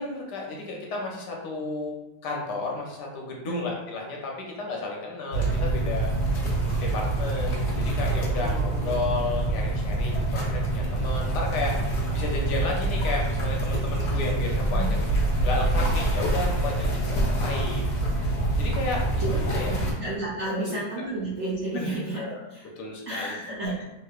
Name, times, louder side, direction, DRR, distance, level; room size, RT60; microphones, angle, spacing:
voice 1, 0.0-1.9 2.2-6.1 6.8-17.9 18.6-19.7 20.5-20.7 21.7-22.3 22.8-23.3 23.6-23.7, left 3 dB, 70° left, -1 dB, 1.1 m, -33 dB
sound 1, 5.3-19.9, right 2 dB, 85° left, 0.6 m, -26 dB
voice 2, 8.3-9.3 14.6-14.9 19.2-19.3 19.7-22.7 23.1-23.8, right 2 dB, 70° right, -7 dB, 0.7 m, -32 dB
3.2 x 2.9 x 2.3 m, 0.98 s
omnidirectional pair, 2.0 m